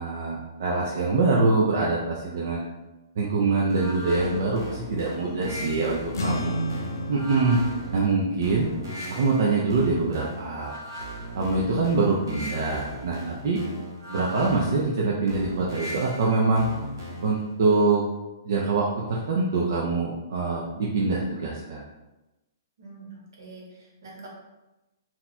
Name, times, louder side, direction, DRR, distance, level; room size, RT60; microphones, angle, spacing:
voice 1, 0.0-2.6 3.2-6.6 7.1-7.6 7.9-8.7 9.1-10.8 11.3-13.6 14.1-16.7 17.2-18.0 18.4-21.8, right 3 dB, 45° right, -4 dB, 0.5 m, -24 dB
sound 1, 3.7-17.5, equal, 85° right, 1.2 m, -38 dB
voice 2, 5.3-5.9 22.8-24.3, right 3 dB, 70° right, -3 dB, 1.3 m, -43 dB
sound 2, 6.1-12.8, equal, 65° left, 0.5 m, -35 dB
2.7 x 2.2 x 4.1 m, 1.0 s
hypercardioid pair, 175°, 2 cm